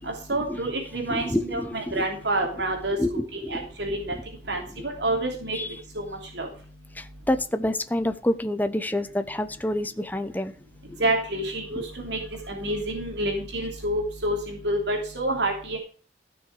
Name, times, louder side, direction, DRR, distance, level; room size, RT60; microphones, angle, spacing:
voice 1, 0.0-3.0 3.3-4.1 4.5-5.6 5.9-6.0 6.3-6.5 11.0-12.2 12.5-15.8, right 1 dB, 75° right, 3.0 m, -28 dB
voice 2, 1.1-2.0 2.9-3.7 4.1-4.2 5.5-5.8 6.9-10.5 10.9-11.0 11.8-11.9, left 1 dB, 10° left, 0.9 m, -28 dB
14.5 x 6.5 x 4.8 m
head